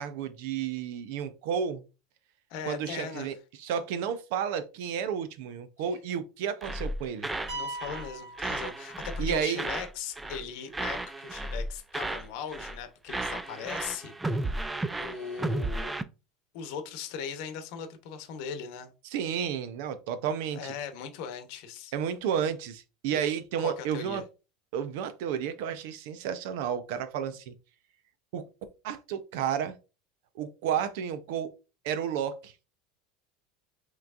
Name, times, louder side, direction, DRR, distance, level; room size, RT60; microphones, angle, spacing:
voice 1, 0.0-1.8 2.7-7.3 9.2-9.7 19.1-20.7 21.9-24.2 24.7-27.5 28.3-28.4 28.8-29.8 30.4-31.5 31.8-32.5, right 8 dB, 60° right, 0.7 m, -32 dB
voice 2, 2.5-3.3 7.5-14.1 15.0-15.9 16.5-18.9 20.5-21.9 23.1-23.2 23.6-24.2, left 7 dB, 55° left, 1.0 m, -39 dB
sound 1, 6.6-7.6 7.8-8.1 8.4-9.9 10.2-10.5 10.7-12.3 12.5-12.8 13.1-16.0, right 2 dB, 10° right, 0.3 m, -33 dB
sound 2, 7.5-9.4, right 1 dB, 35° right, 2.2 m, -40 dB
5.7 x 3.1 x 2.5 m
supercardioid pair, 165°, 0 cm